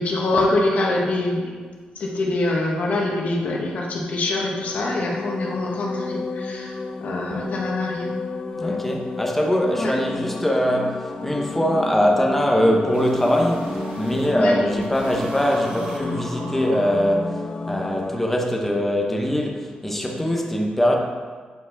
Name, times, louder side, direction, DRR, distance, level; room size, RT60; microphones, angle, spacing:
voice 1, 0.0-1.6 1.9-8.1 8.6-8.8 9.8-9.9 14.3-14.6, left 2 dB, 55° left, -2 dB, 1.2 m, -24 dB
sound 1, 4.5-18.1, left 3 dB, 30° left, 0.4 m, -32 dB
sound 2, 7.5-7.6 7.9-8.0 8.3-8.4 8.7-8.9 9.1-14.3 14.7-17.5, right 2 dB, 75° right, 1.4 m, -39 dB
voice 2, 8.6-20.9, equal, 5° left, 1 dB, 0.8 m, -22 dB
8.5 x 4.7 x 3.9 m, 1.5 s
wide cardioid pair, 155°, 3 cm